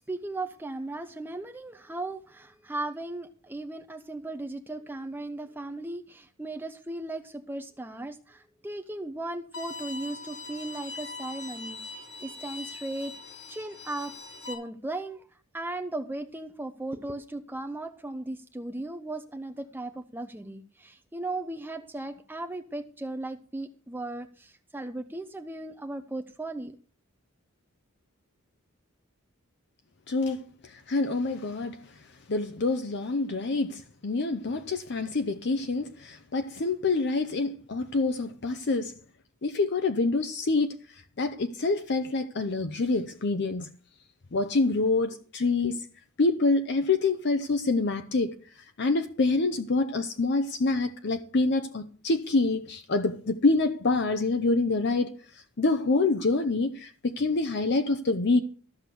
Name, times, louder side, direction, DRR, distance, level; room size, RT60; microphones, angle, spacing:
voice 1, 0.1-14.1 14.4-15.3 15.5-26.8, right 2 dB, 10° right, 0.6 m, -37 dB
Bowed string instrument, 9.5-14.5, left 3 dB, 80° left, 4.6 m, -41 dB
voice 2, 30.1-30.4 30.9-31.8 32.3-38.9 39.4-40.8 41.2-43.7 44.3-45.8 46.2-48.3 48.8-55.1 55.6-58.4, left 3 dB, 55° left, 0.7 m, -26 dB
14.0 x 6.1 x 6.8 m
head